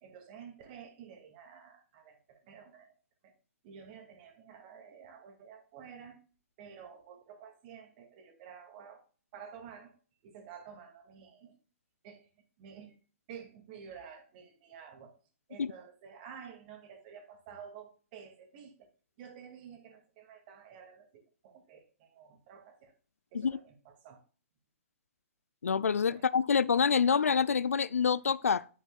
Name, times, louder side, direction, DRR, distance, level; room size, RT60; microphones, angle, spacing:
voice 1, 0.0-2.9 3.2-3.3 3.6-6.2 6.6-9.1 9.3-10.0 10.2-11.5 12.0-13.0 13.3-15.2 15.5-18.9 19.2-22.9 23.3-24.2 26.1-26.3, right 7 dB, 40° right, 2.2 m, -51 dB
voice 2, 25.6-28.7, left 6 dB, 90° left, 0.4 m, -27 dB
9.2 x 8.2 x 2.3 m
hypercardioid pair, 130°, 7 cm